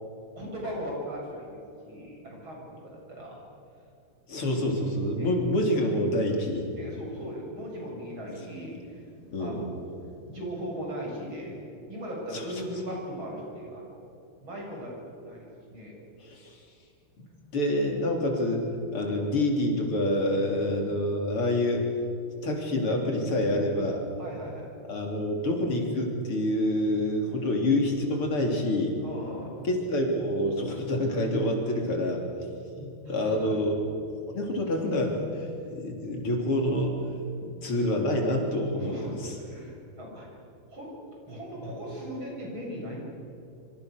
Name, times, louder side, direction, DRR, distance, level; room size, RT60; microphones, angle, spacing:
voice 1, 0.4-3.4 5.2-5.3 6.7-9.9 10.3-11.6 11.9-14.1 14.4-15.9 19.0-19.1 24.2-24.7 27.2-27.5 29.0-29.7 33.0-33.6 38.7-40.3 40.7-40.9 41.3-43.0, equal, 70° right, -2 dB, 7.9 m, -38 dB
voice 2, 4.3-6.7 9.3-9.6 12.3-12.4 16.2-16.6 17.5-18.6 18.9-21.9 22.4-24.0 24.9-28.9 29.6-32.2 32.8-33.8 34.3-37.0 37.4-39.1, left 1 dB, 85° left, 1 dB, 4.3 m, -27 dB
26.5 x 25.0 x 6.6 m, 2.6 s
omnidirectional pair, 2.4 m